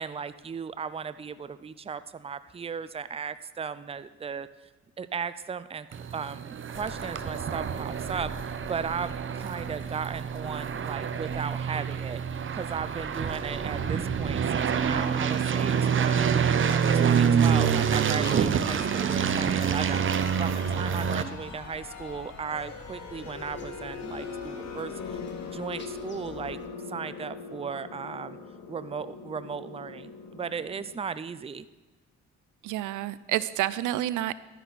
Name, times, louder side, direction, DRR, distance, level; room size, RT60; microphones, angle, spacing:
voice 1, 0.0-4.5 5.0-5.9 6.1-12.2 12.5-25.2 25.5-26.6 26.9-28.4 28.7-31.7, right 6 dB, 20° right, 14 dB, 0.5 m, -36 dB
sound 1, 5.9-21.2, right 7 dB, 40° right, 0.8 m, -27 dB
sound 2, 6.7-26.7, left 4 dB, 40° left, 1.3 m, -49 dB
sound 3, 18.6-30.9, left 5 dB, 65° left, 1.8 m, -41 dB
voice 2, 32.6-34.3, right 14 dB, 85° right, 17 dB, 0.5 m, -29 dB
12.0 x 10.0 x 4.1 m, 1.2 s
cardioid pair, 90°, 30 cm